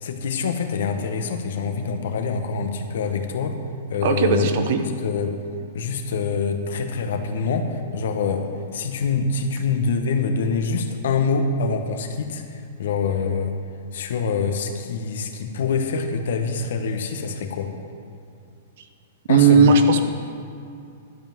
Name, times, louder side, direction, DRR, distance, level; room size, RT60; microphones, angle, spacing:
voice 1, 0.0-3.6 3.9-4.5 4.7-5.3 5.7-8.5 8.7-13.5 13.9-17.7 19.3-19.7, left 5 dB, 70° left, 6 dB, 1.1 m, -25 dB
voice 2, 4.0-4.8 19.3-20.0, right 4 dB, 60° right, 7 dB, 1.0 m, -16 dB
11.5 x 5.3 x 7.6 m, 2.5 s
hypercardioid pair, 125°, 0 cm